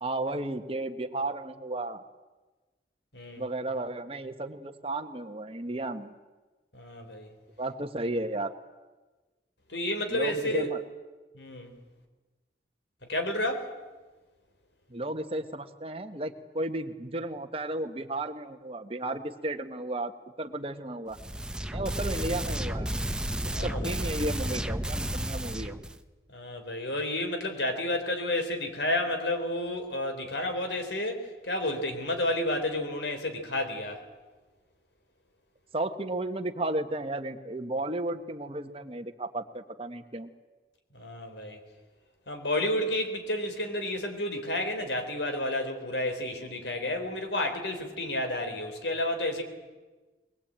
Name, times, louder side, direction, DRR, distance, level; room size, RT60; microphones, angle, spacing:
voice 1, 0.0-2.0 3.4-6.1 7.6-8.5 10.1-10.8 14.9-20.1 20.4-21.2 21.7-22.9 23.4-25.8 35.7-40.3, right 2 dB, 35° right, 7 dB, 1.4 m, -33 dB
voice 2, 3.1-3.4 6.7-7.3 9.7-10.7 11.3-11.7 13.1-13.7 23.5-23.9 26.3-31.2 31.4-34.0 40.9-41.6 42.3-49.5, left 1 dB, 85° left, 6 dB, 3.9 m, -31 dB
sound 1, 21.1-26.0, right 1 dB, 5° right, 0.8 m, -32 dB
22.0 x 21.0 x 8.9 m, 1.2 s
head